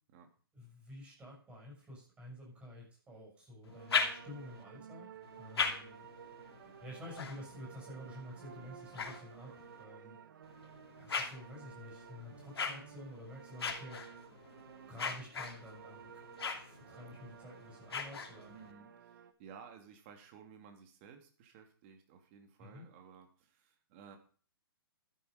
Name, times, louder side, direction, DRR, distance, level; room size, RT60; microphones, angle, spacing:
voice 1, 0.5-5.1 5.4-6.1 6.8-10.2 11.0-14.0 14.9-16.2 16.5-18.6 22.6-22.9, left 1 dB, 10° right, -2 dB, 6.8 m, -50 dB
sound 1, 3.6-4.6 5.2-9.8 10.4-18.7, left 5 dB, 80° left, 2.6 m, -41 dB
sound 2, 3.7-19.3, right 8 dB, 55° right, 1.5 m, -54 dB
voice 2, 18.4-24.2, right 6 dB, 30° right, 5 dB, 2.8 m, -56 dB
12.5 x 10.0 x 5.2 m, 0.41 s
hypercardioid pair, 160°, 13 cm